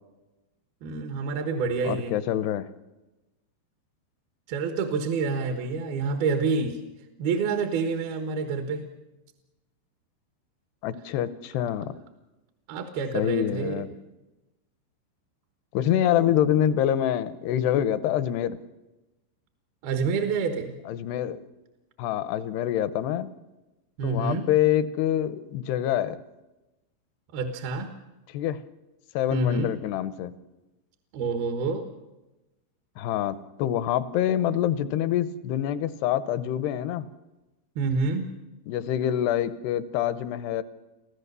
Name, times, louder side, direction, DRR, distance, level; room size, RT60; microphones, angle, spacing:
voice 1, 0.8-2.2 4.5-6.8 7.2-8.8 12.7-13.9 19.8-20.7 24.0-24.5 27.3-27.9 29.3-29.7 31.1-31.8 37.8-38.3, right 4 dB, 65° right, 5 dB, 3.0 m, -27 dB
voice 2, 1.8-2.7 10.8-11.9 13.1-13.9 15.7-18.6 20.9-21.4 22.0-23.3 24.0-26.2 28.3-28.6 29.1-30.3 33.0-37.1 38.7-40.6, left 11 dB, 75° left, 14 dB, 2.7 m, -26 dB
26.5 x 15.5 x 6.8 m, 1.0 s
omnidirectional pair, 5.2 m